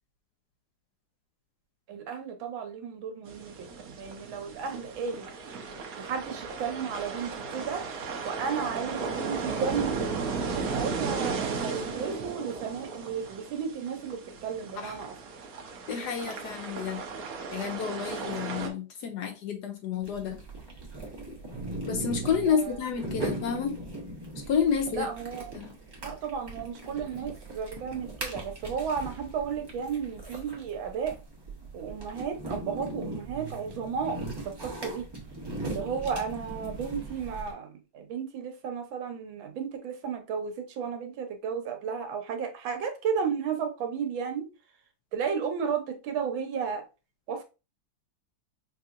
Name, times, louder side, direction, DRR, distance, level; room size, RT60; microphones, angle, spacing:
voice 1, 1.9-5.3 6.0-7.8 8.2-10.1 10.7-15.1 22.5-22.8 24.9-25.5 26.0-31.1 31.7-34.2 34.6-35.1 35.6-44.5 45.1-46.8 47.3-47.5, right 6 dB, 85° right, 1.6 m, -33 dB
sound 1, 3.3-18.7, right 4 dB, 60° right, 1.1 m, -35 dB
voice 2, 15.9-17.0 17.5-20.4 21.9-23.8 24.5-25.1 25.5-25.7, left 7 dB, 70° left, 1.1 m, -30 dB
sound 2, 20.0-37.5, right 2 dB, 20° right, 0.6 m, -39 dB
5.5 x 2.8 x 2.5 m
omnidirectional pair, 2.1 m